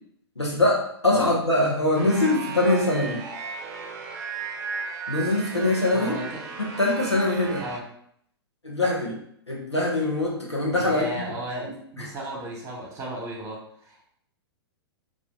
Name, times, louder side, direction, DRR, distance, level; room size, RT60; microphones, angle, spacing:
voice 1, 0.4-3.3 5.1-6.2 6.6-7.6 8.6-11.4 11.6-11.7 12.0-12.1, left 2 dB, 90° left, -3 dB, 0.8 m, -23 dB
sound 1, 1.9-7.8, right 4 dB, 45° right, 0.4 m, -35 dB
voice 2, 5.9-6.4 7.6-7.8 10.8-14.1, right 1 dB, 20° right, -2 dB, 0.9 m, -35 dB
2.5 x 2.2 x 3.6 m, 0.68 s
figure-of-eight pair, 105°, 14 cm